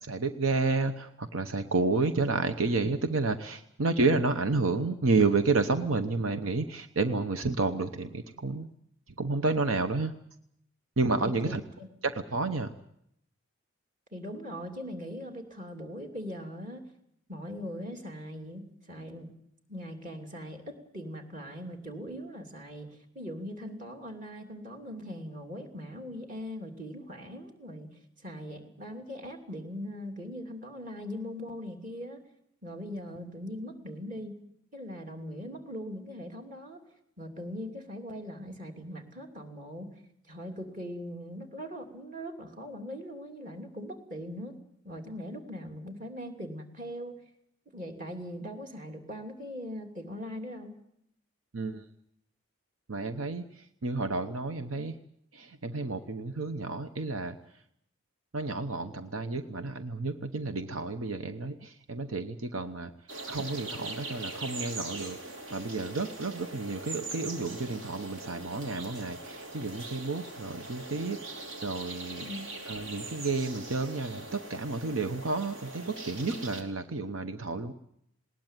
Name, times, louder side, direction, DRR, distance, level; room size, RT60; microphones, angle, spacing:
voice 1, 0.0-8.7 9.2-10.1 11.0-11.6 12.0-12.7 51.5-51.8 52.9-55.0 55.3-57.4 58.3-62.9 63.3-65.2 65.5-72.3 72.7-77.7, right 3 dB, 85° right, 8 dB, 1.0 m, -30 dB
voice 2, 11.2-11.9 14.1-16.9 17.3-19.3 19.7-27.9 28.2-32.2 32.6-34.4 34.7-36.8 37.2-40.0 40.3-44.6 44.8-47.2 47.7-50.7 72.2-72.5, equal, 40° right, 2 dB, 3.0 m, -40 dB
sound 1, 63.1-76.6, right 2 dB, 65° right, 3.2 m, -41 dB
20.0 x 18.5 x 9.1 m, 0.76 s
head